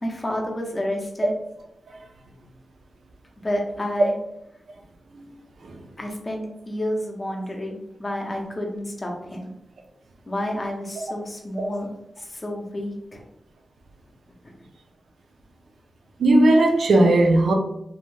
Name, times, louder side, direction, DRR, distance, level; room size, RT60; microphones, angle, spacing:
voice 1, 0.0-1.3 3.4-4.2 6.0-9.5 10.3-11.9 12.2-13.2, left 1 dB, 25° left, 1 dB, 0.5 m, -30 dB
voice 2, 16.2-17.5, right 1 dB, 75° right, 2 dB, 0.4 m, -17 dB
2.6 x 2.1 x 3.1 m, 0.80 s
wide cardioid pair, 160°, 0 cm